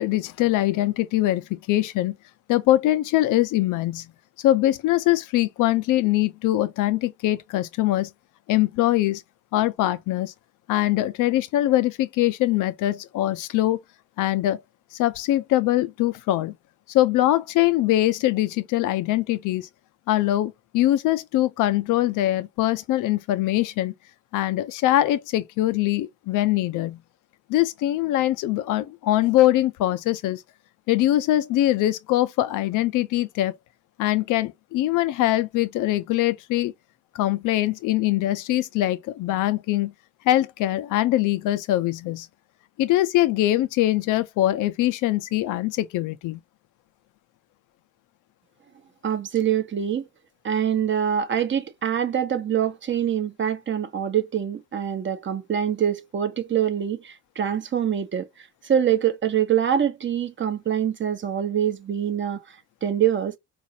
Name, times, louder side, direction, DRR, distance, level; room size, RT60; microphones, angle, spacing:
voice 1, 0.0-2.1 2.5-4.1 4.4-8.1 8.5-9.2 9.5-10.3 10.7-13.8 14.2-14.6 14.9-16.6 16.9-19.7 20.1-23.9 24.3-27.0 27.5-30.4 30.9-33.5 34.0-36.7 37.1-39.9 40.2-42.3 42.8-46.4, left 15 dB, 90° left, 0.5 m, -22 dB
voice 2, 49.0-50.0 50.4-62.4 62.8-63.4, right 9 dB, 40° right, 0.7 m, -24 dB
4.0 x 2.5 x 2.7 m
cardioid pair, 90°, 30 cm